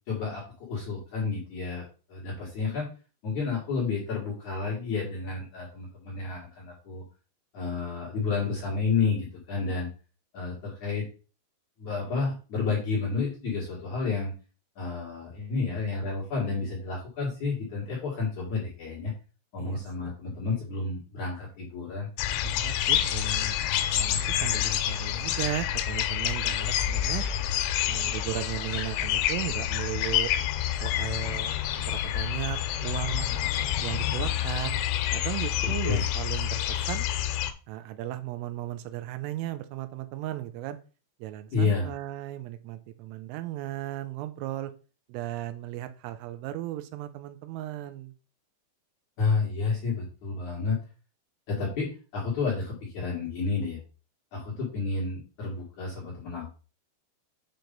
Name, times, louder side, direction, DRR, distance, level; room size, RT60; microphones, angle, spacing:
voice 1, 0.1-1.8 2.1-2.9 3.2-7.0 7.5-9.9 10.3-11.1 11.8-14.3 14.8-19.1 19.5-22.1 35.8-36.0 41.5-41.9 49.2-50.8 51.5-53.8 54.3-56.6, left 4 dB, 55° left, -5 dB, 2.3 m, -30 dB
voice 2, 19.6-20.1 22.4-23.6 24.0-27.2 27.9-30.3 30.8-33.3 33.8-34.8 35.1-37.1 37.7-40.8 41.2-44.7 45.1-48.1, right 14 dB, 85° right, 10 dB, 3.1 m, -36 dB
sound 1, 22.2-37.5, left 11 dB, 85° left, 3.2 m, -28 dB
7.8 x 2.9 x 5.2 m, 0.35 s
omnidirectional pair, 5.7 m